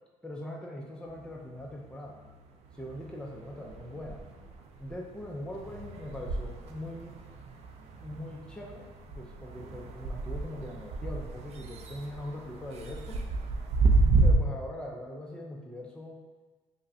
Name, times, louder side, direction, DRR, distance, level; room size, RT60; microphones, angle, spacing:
voice 1, 0.2-2.2 2.7-4.2 4.8-7.2 8.0-8.9 9.2-13.2 14.2-16.2, left 1 dB, 5° left, -1 dB, 0.4 m, -41 dB
sound 1, 1.1-2.3 2.6-14.3, right 3 dB, 55° right, 0.4 m, -31 dB
5.0 x 2.1 x 2.6 m, 1.3 s
cardioid pair, 115°, 13 cm